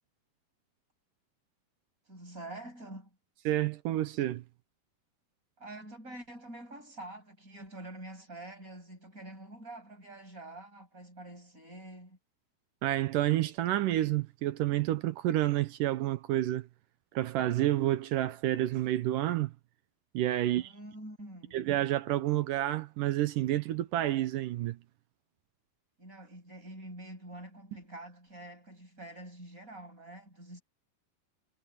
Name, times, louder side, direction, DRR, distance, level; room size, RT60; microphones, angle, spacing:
voice 1, 2.1-3.2 5.6-12.2 20.5-21.6 26.0-30.6, right 1 dB, 20° right, 7.6 m, -46 dB
voice 2, 3.5-4.4 12.8-16.7 17.1-19.5 20.1-20.7 21.5-24.8, right 14 dB, 75° right, 2.1 m, -29 dB
omnidirectional pair, 4.5 m